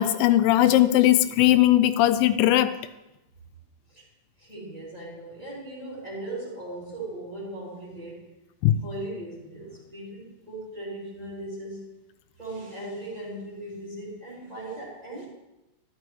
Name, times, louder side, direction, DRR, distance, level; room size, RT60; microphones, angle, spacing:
voice 1, 0.0-2.7 8.6-8.8, left 13 dB, 90° left, 2.3 m, -19 dB
voice 2, 4.4-8.2 8.8-11.9 12.4-15.3, right 1 dB, 10° right, 2.6 m, -38 dB
13.0 x 11.0 x 3.1 m
omnidirectional pair, 3.9 m